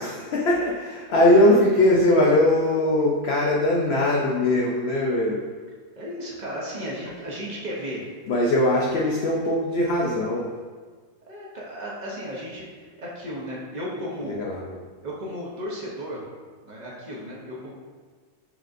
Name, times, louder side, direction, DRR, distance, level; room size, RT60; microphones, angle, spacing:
voice 1, 0.0-5.4 8.3-10.5 14.3-14.7, left 1 dB, 85° left, -3 dB, 0.5 m, -21 dB
voice 2, 1.1-1.5 6.0-8.0 11.3-14.4 15.0-16.2 16.7-17.7, equal, 65° right, -5 dB, 0.4 m, -34 dB
6.2 x 2.5 x 2.5 m, 1.5 s
omnidirectional pair, 1.6 m